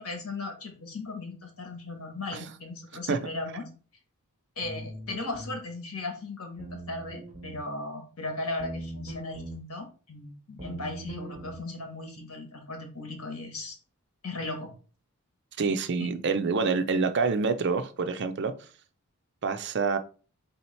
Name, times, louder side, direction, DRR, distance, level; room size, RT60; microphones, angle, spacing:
voice 1, 0.0-3.6 4.6-13.8 14.2-14.7 16.0-16.1, left 2 dB, 80° left, 1.4 m, -37 dB
sound 1, 4.6-5.6 6.6-7.6 8.6-9.6 10.6-11.6, right 1 dB, 35° right, 1.0 m, -41 dB
voice 2, 15.6-18.5 19.4-20.0, right 4 dB, 50° right, 0.4 m, -27 dB
3.7 x 2.8 x 4.3 m
head